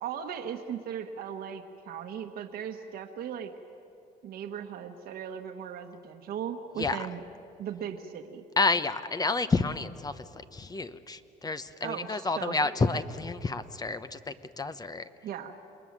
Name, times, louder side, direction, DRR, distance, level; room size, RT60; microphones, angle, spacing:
voice 1, 0.0-3.5 4.2-7.2 7.6-8.4 11.8-12.8 15.2-15.6, right 8 dB, 65° right, 4 dB, 1.3 m, -38 dB
voice 2, 8.6-15.0, left 3 dB, 20° left, 12 dB, 0.9 m, -30 dB
28.0 x 20.5 x 7.5 m, 2.8 s
cardioid pair, 110°, 17 cm